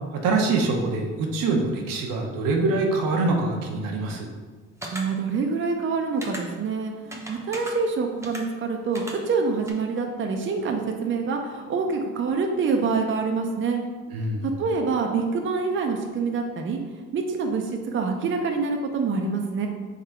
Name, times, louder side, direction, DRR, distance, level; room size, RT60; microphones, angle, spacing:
voice 1, 0.1-4.3 14.1-14.6, right 3 dB, 75° right, 2 dB, 0.9 m, -24 dB
sound 1, 4.8-5.0 6.2-6.4 7.1-7.7 8.2-8.4 8.9-9.1 9.7-9.8, right 1 dB, 10° right, 0.8 m, -36 dB
voice 2, 4.9-13.8 14.4-19.7, right 4 dB, 35° right, 3 dB, 0.6 m, -26 dB
3.8 x 3.1 x 4.4 m, 1.4 s
supercardioid pair, 80°, 34 cm